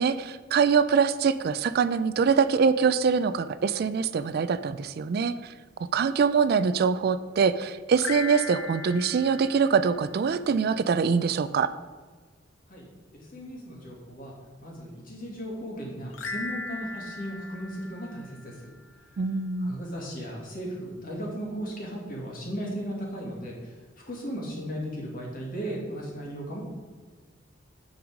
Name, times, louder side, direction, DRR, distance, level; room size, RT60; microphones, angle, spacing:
voice 1, 0.0-5.5 5.8-11.7 19.2-19.8, right 6 dB, 50° right, 13 dB, 0.3 m, -24 dB
sound 1, 7.9-10.4 16.1-18.7, left 3 dB, 80° left, 0.7 m, -38 dB
voice 2, 13.1-14.3 14.6-18.7 19.6-23.7 24.1-26.6, equal, 45° left, -2 dB, 2.4 m, -36 dB
8.7 x 5.5 x 5.0 m, 1.4 s
head